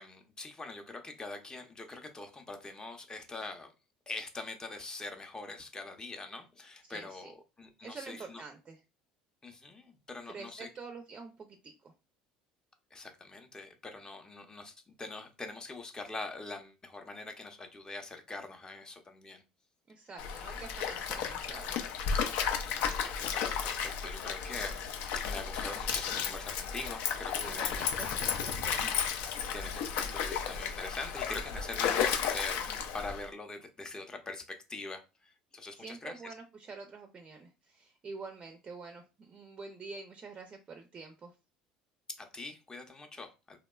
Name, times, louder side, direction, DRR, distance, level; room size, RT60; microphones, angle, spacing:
voice 1, 0.0-3.7 4.1-8.4 9.4-10.7 12.9-19.4 22.7-24.9 25.1-27.9 29.5-36.2 42.2-43.6, left 3 dB, 20° left, 5 dB, 0.6 m, -43 dB
voice 2, 6.9-7.3 7.8-8.8 10.3-11.9 19.9-22.2 27.4-29.1 35.8-41.3, right 4 dB, 35° right, 5 dB, 0.4 m, -47 dB
Stream, 20.2-33.3, left 7 dB, 70° left, 0.4 m, -33 dB
2.8 x 2.1 x 2.2 m, 0.28 s
hypercardioid pair, 75°, 3 cm